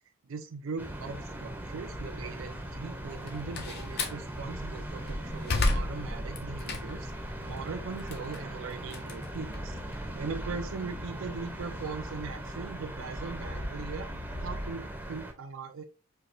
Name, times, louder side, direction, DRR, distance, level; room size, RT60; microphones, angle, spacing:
voice 1, 0.2-9.7 10.2-14.1 14.4-15.8, right 4 dB, 60° right, 7 dB, 0.4 m, -40 dB
sound 1, 0.8-15.3, right 1 dB, 10° right, 0.6 m, -40 dB
sound 2, 1.9-14.7, equal, 85° left, 0.9 m, -44 dB
Slam, 3.1-4.2 4.8-7.1 7.6-9.9, left 2 dB, 45° left, 0.6 m, -32 dB
4.4 x 2.8 x 2.5 m, 0.32 s
head